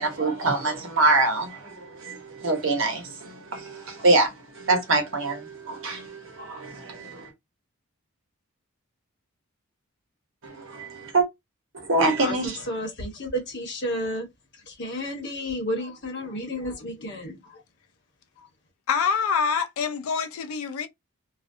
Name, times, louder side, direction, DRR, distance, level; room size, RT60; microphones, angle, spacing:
voice 1, 0.0-7.3 10.4-11.3 11.7-12.6, right 2 dB, 60° right, 0.9 m, -25 dB
voice 2, 12.2-14.3 14.6-17.6 18.4-18.5, equal, 50° left, 1.0 m, -32 dB
voice 3, 18.9-20.9, left 6 dB, 80° left, 0.4 m, -25 dB
2.4 x 2.1 x 2.6 m
head